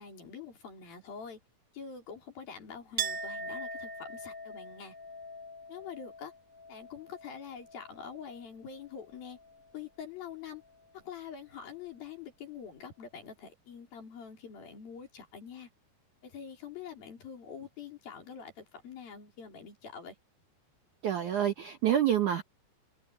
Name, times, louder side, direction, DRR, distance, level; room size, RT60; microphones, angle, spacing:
voice 1, 0.0-1.4 1.7-4.9 5.7-6.3 6.7-9.4 9.7-10.6 10.9-15.7 16.2-20.2, left 7 dB, 55° left, 5.9 m, -45 dB
Chink clink, 3.0-8.5 8.8-9.7, right 3 dB, 20° right, 1.9 m, -41 dB
voice 2, 21.0-22.4, right 10 dB, 65° right, 2.1 m, -27 dB
omnidirectional pair, 5.1 m